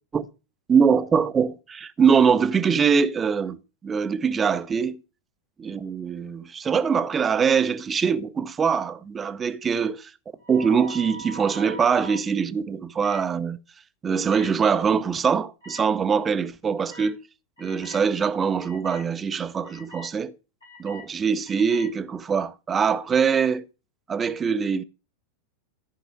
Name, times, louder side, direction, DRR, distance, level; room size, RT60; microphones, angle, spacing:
voice 1, 0.7-3.6 3.8-5.0 5.6-10.1 10.5-13.6 14.0-17.2 17.6-20.4 20.8-23.7 24.1-24.8, right 6 dB, 20° right, 0.7 m, -23 dB
sound 1, 10.4-12.2 13.0-13.2 14.3-14.5 15.6-15.8 16.9-17.1 17.6-18.0 18.6-19.0 19.6-20.1 20.6-21.0 21.5-21.9, right 1 dB, 75° left, 4.2 m, -42 dB
14.0 x 4.9 x 5.3 m
figure-of-eight pair, 90°, 0 cm